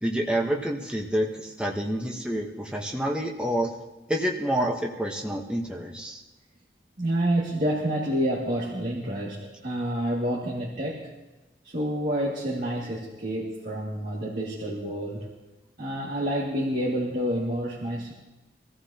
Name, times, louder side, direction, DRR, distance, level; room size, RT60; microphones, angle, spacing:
voice 1, 0.0-3.8 4.1-6.2, right 1 dB, 5° right, -1 dB, 1.0 m, -28 dB
voice 2, 7.0-11.1 11.6-15.3 15.8-18.1, equal, 45° right, -4 dB, 2.3 m, -28 dB
24.5 x 15.0 x 2.9 m, 1.1 s
head